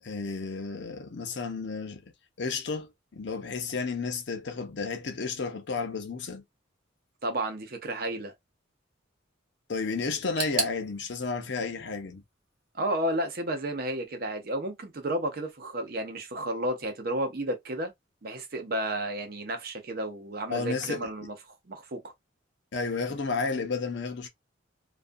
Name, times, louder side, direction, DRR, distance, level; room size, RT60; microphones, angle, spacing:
voice 1, 0.0-2.0 2.4-6.4 9.7-12.2 20.5-21.1 22.7-24.3, left 4 dB, 60° left, 0.6 m, -32 dB
voice 2, 7.2-8.3 12.7-17.9 18.2-22.1, right 1 dB, 45° right, 0.6 m, -32 dB
sound 1, 10.4-13.2 13.5-14.3 14.6-14.7 15.5-15.6, right 5 dB, 80° right, 0.9 m, -38 dB
2.4 x 2.3 x 2.5 m
head